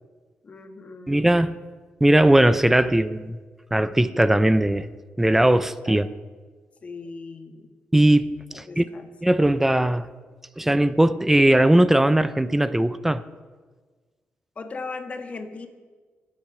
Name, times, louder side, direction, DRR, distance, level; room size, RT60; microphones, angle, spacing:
voice 1, 0.4-1.3 5.8-6.0 6.8-7.7 8.5-9.0 14.6-15.7, left 4 dB, 35° left, 1.5 m, -37 dB
voice 2, 1.1-1.6 2.0-3.4 3.7-4.9 5.2-6.1 7.9-8.9 9.2-10.1 10.6-13.2, right 1 dB, 10° right, 0.6 m, -19 dB
24.5 x 8.8 x 6.1 m
wide cardioid pair, 135°, 4 cm